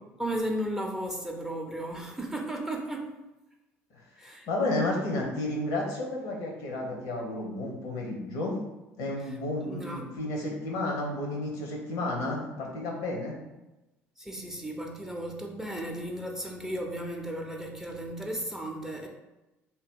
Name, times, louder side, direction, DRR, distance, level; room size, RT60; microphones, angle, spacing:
voice 1, 0.2-3.1 4.2-4.5 9.3-9.4 9.6-10.2 14.2-19.1, right 1 dB, 5° right, 1 dB, 0.6 m, -35 dB
voice 2, 4.2-8.6 9.0-13.4, left 2 dB, 70° left, -1 dB, 0.9 m, -32 dB
2.8 x 2.2 x 3.6 m, 1.0 s
hypercardioid pair, 60°, 7 cm